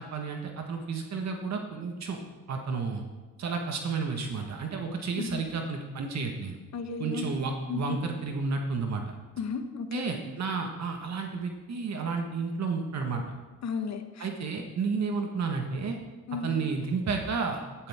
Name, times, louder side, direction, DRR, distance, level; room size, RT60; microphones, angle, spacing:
voice 1, 0.0-2.2 2.5-3.0 3.4-6.6 7.0-9.1 9.9-13.2 14.2-16.0 16.4-17.9, right 4 dB, 55° right, 3 dB, 1.7 m, -31 dB
voice 2, 6.7-7.3 7.7-8.0 9.4-10.0 13.6-14.3 16.3-16.5, left 5 dB, 55° left, 8 dB, 1.3 m, -34 dB
15.5 x 12.0 x 3.7 m, 1.2 s
cardioid pair, 90°, 33 cm